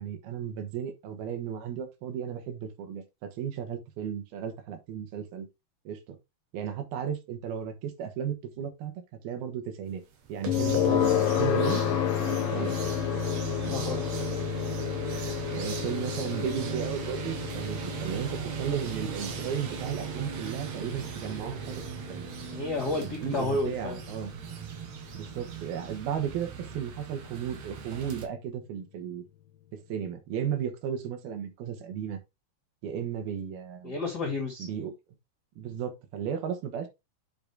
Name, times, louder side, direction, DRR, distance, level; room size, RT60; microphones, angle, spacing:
voice 1, 0.0-5.5 5.9-6.2 6.5-10.0 10.3-11.8 12.3-12.7 15.5-22.3 23.0-24.3 25.1-29.2 29.7-32.2 32.8-33.9 34.6-34.9 35.6-36.9, right 8 dB, 75° right, 3.2 m, -35 dB
sound 1, 10.1-28.3, right 8 dB, 60° right, 2.1 m, -38 dB
sound 2, 10.5-25.4, left 10 dB, 75° left, 2.4 m, -31 dB
voice 2, 13.6-14.0 14.3-14.5 15.1-15.3 22.5-24.0 33.8-34.7, left 2 dB, 30° left, 2.3 m, -32 dB
7.9 x 5.4 x 3.5 m
omnidirectional pair, 4.5 m